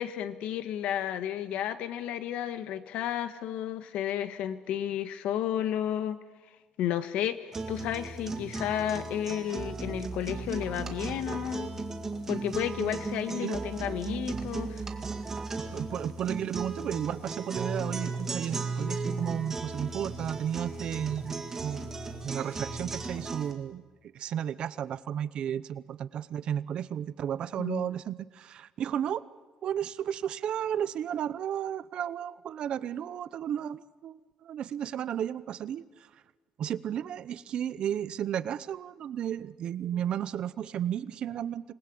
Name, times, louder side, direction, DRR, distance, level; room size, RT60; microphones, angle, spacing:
voice 1, 0.0-6.2 6.8-11.7 12.3-14.8 27.6-27.9, left 10 dB, 75° left, 11 dB, 1.5 m, -32 dB
sound 1, 7.5-23.5, right 3 dB, 20° right, 2.1 m, -36 dB
voice 2, 15.7-21.9 22.2-23.8 24.1-29.2 29.6-35.8 36.6-41.7, right 9 dB, 50° right, 16 dB, 0.8 m, -33 dB
27.0 x 20.5 x 8.6 m, 1.3 s
cardioid pair, 160°, 2 cm